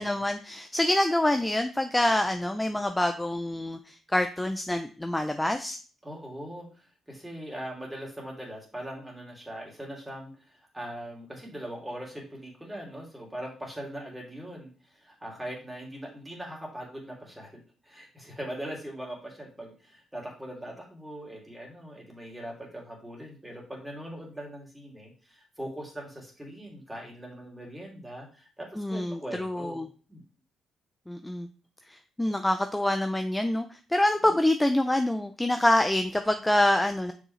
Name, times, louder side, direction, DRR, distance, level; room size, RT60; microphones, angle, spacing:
voice 1, 0.0-5.8 28.8-29.9 31.1-31.5 31.9-37.1, left 1 dB, 10° left, 7 dB, 0.5 m, -26 dB
voice 2, 6.0-30.2 34.2-34.3, right 1 dB, 10° right, -1 dB, 2.6 m, -41 dB
6.3 x 4.9 x 3.2 m, 0.38 s
cardioid pair, 90°, 0 cm